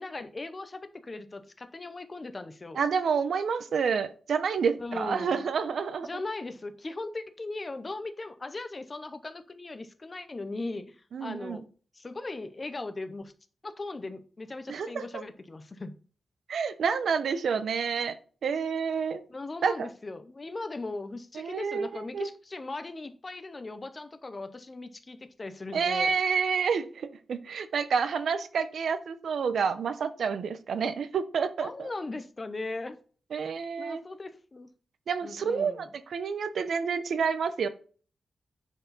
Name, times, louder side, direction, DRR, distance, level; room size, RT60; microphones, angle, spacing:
voice 1, 0.0-2.8 4.8-5.4 6.0-11.7 11.9-13.3 13.6-15.9 19.3-26.1 31.6-33.0 33.8-34.7 35.2-35.9, left 2 dB, 25° left, 10 dB, 0.7 m, -38 dB
voice 2, 2.8-6.1 11.1-11.6 14.7-15.2 16.5-18.2 18.4-19.2 19.6-19.9 21.4-22.3 25.7-31.9 33.3-34.0 35.1-37.7, right 6 dB, 70° right, 11 dB, 0.8 m, -29 dB
10.0 x 4.7 x 4.1 m, 0.41 s
wide cardioid pair, 155°, 0 cm